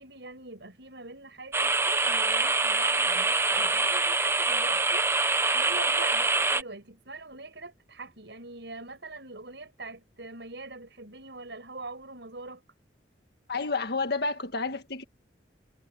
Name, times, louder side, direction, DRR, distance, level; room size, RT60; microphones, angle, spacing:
voice 1, 0.0-5.1 5.5-12.6, right 3 dB, 85° right, 5.8 m, -43 dB
sound 1, 1.5-6.6, right 3 dB, 15° right, 0.9 m, -25 dB
voice 2, 13.5-15.0, left 3 dB, 65° left, 1.8 m, -30 dB
head